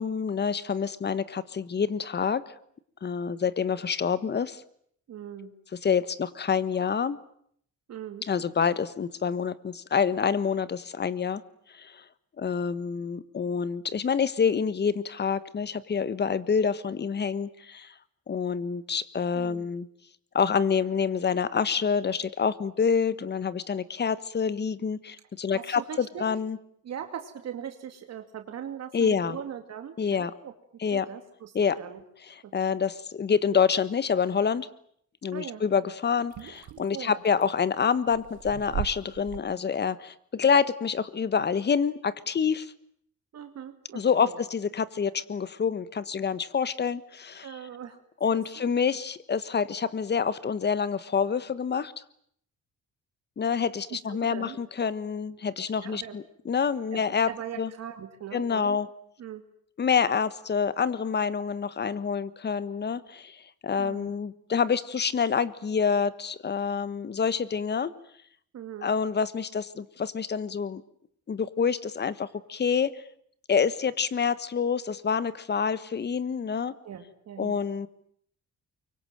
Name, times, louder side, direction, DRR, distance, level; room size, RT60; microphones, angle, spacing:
voice 1, 0.0-2.5 3.0-4.6 5.8-7.2 8.3-11.4 11.7-12.0 12.4-17.9 18.3-19.9 20.3-26.6 28.9-29.4 30.0-30.3 30.8-31.1 31.5-31.8 32.5-34.7 35.2-42.7 43.9-47.5 48.2-51.9 53.4-57.3 57.6-57.7 58.3-58.9 59.8-67.9 68.8-70.8 71.3-72.9 73.5-76.7 77.4-77.9, left 6 dB, 35° left, 16 dB, 1.4 m, -27 dB
voice 2, 5.1-5.5 7.9-8.2 19.3-19.7 25.5-26.2 26.8-30.5 30.9-31.5 31.8-32.0 32.4-32.8 35.3-35.6 36.9-37.2 43.3-44.4 47.4-48.0 48.3-48.7 53.9-54.6 55.8-56.2 56.9-58.8 59.2-59.4 63.8-64.1 68.5-68.9 76.8-77.6, right 9 dB, 60° right, 7 dB, 2.4 m, -40 dB
sound 1, 36.3-37.4 38.0-39.4, right 12 dB, 75° right, 1.6 m, -37 dB
24.5 x 24.0 x 9.1 m, 0.66 s
cardioid pair, 125°, 30 cm